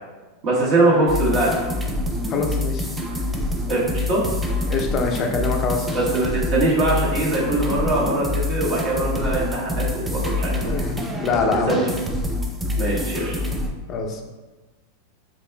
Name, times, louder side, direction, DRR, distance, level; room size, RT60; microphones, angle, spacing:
voice 1, 0.4-1.6 3.7-4.2 5.9-10.7 11.3-11.9 12.8-13.3, right 2 dB, 50° right, -6 dB, 1.4 m, -22 dB
sound 1, 1.1-13.7, left 1 dB, 10° right, 0.5 m, -26 dB
voice 2, 2.3-2.9 4.7-6.0 10.5-10.9 11.2-11.8 13.9-14.2, left 4 dB, 40° left, 3 dB, 0.5 m, -24 dB
5.0 x 2.3 x 2.2 m, 1.2 s
hypercardioid pair, 105°, 0 cm